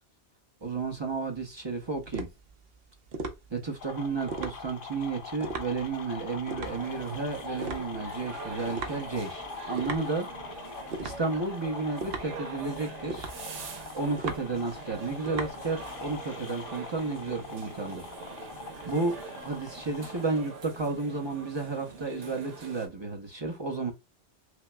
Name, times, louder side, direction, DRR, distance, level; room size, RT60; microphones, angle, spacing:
voice 1, 0.6-2.3 3.5-10.3 11.0-13.3 13.9-18.1 18.8-19.2 19.4-23.9, right 3 dB, 30° right, 0.7 m, -32 dB
sound 1, 0.6-16.2, right 4 dB, 60° right, 0.9 m, -40 dB
sound 2, 3.8-20.2, left 5 dB, 55° left, 0.7 m, -43 dB
sound 3, 6.6-22.9, right 4 dB, 90° right, 1.2 m, -44 dB
5.9 x 2.0 x 2.2 m
omnidirectional pair, 1.2 m